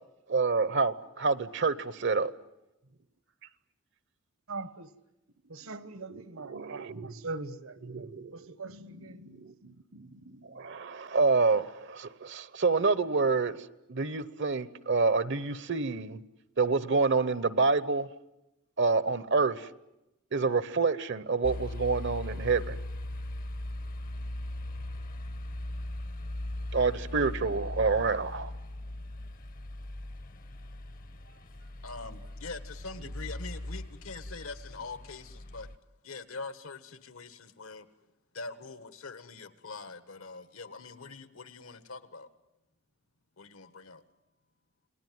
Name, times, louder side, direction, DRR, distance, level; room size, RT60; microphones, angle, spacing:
voice 1, 0.3-2.3 6.1-7.1 7.8-13.6 13.9-16.2 16.6-18.1 18.8-19.7 20.3-22.8 26.7-28.5, right 4 dB, 55° right, 0.9 m, -28 dB
voice 2, 4.5-4.9 5.5-9.2 33.0-33.1, right 3 dB, 75° right, 1.3 m, -42 dB
sound 1, 21.4-35.8, left 1 dB, 40° left, 0.9 m, -39 dB
voice 3, 31.8-35.7 36.0-37.9 38.3-42.3 43.4-44.0, left 3 dB, 75° left, 1.6 m, -43 dB
29.0 x 19.5 x 9.4 m
head